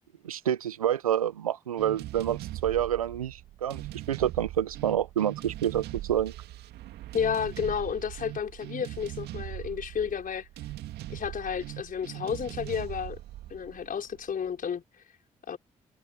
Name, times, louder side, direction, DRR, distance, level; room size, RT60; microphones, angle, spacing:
voice 1, 0.2-6.3, right 10 dB, 90° right, 1.3 m, -28 dB
sound 1, 1.8-14.5, right 15 dB, 70° right, 2.3 m, -40 dB
voice 2, 7.1-10.5 11.1-13.2 13.5-14.8 15.5-15.6, left 7 dB, 50° left, 5.3 m, -31 dB
figure-of-eight pair, 40°, 18 cm